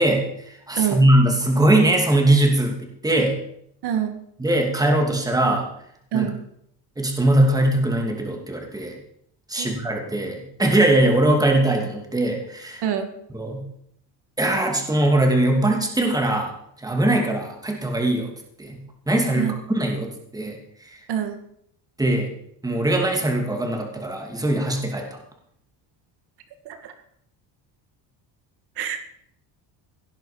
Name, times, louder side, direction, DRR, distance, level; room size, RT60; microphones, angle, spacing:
voice 1, 0.0-2.8 3.0-3.4 4.4-5.7 6.1-6.3 7.0-9.0 9.5-12.8 13.3-13.7 14.4-16.5 16.8-18.3 18.6-18.8 19.1-19.5 19.7-20.6 22.0-22.3 22.6-25.0, right 1 dB, 10° right, 2 dB, 2.7 m, -21 dB
voice 2, 3.8-4.1 6.1-6.4 9.5-9.7 12.8-13.1 19.3-19.5 21.1-21.4 26.7-26.9 28.8-29.0, right 9 dB, 60° right, 7 dB, 2.2 m, -25 dB
17.5 x 10.5 x 5.2 m, 0.71 s
cardioid pair, 140°, 45 cm